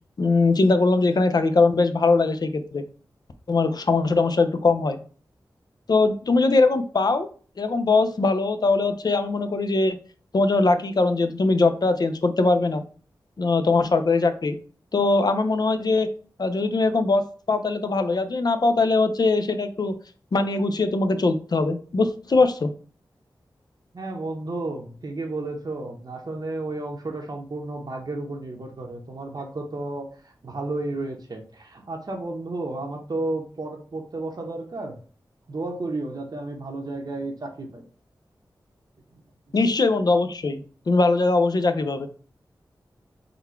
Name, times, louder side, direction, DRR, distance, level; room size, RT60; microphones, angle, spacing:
voice 1, 0.2-2.8 3.5-5.0 5.9-7.3 7.6-10.0 10.3-12.8 13.4-14.6 14.9-16.1 16.4-17.2 17.5-19.9 20.3-22.7 39.5-42.1, left 3 dB, 55° left, 8 dB, 0.6 m, -21 dB
voice 2, 23.9-35.0 35.5-37.8, right 2 dB, 55° right, 1 dB, 0.9 m, -32 dB
3.9 x 2.3 x 4.4 m, 0.41 s
cardioid pair, 55°, 8 cm